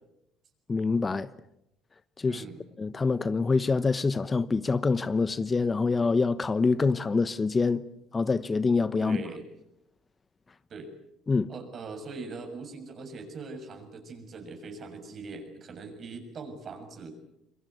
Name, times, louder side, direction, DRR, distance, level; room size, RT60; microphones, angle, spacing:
voice 1, 0.7-1.3 2.2-2.5 2.8-7.8 8.1-9.2 11.3-11.5, left 4 dB, 30° left, 1.0 m, -25 dB
voice 2, 2.2-2.6 9.0-9.4 10.7-10.9 11.5-17.2, right 3 dB, 50° right, 6.8 m, -41 dB
27.0 x 23.0 x 8.2 m
hypercardioid pair, 60°, 0 cm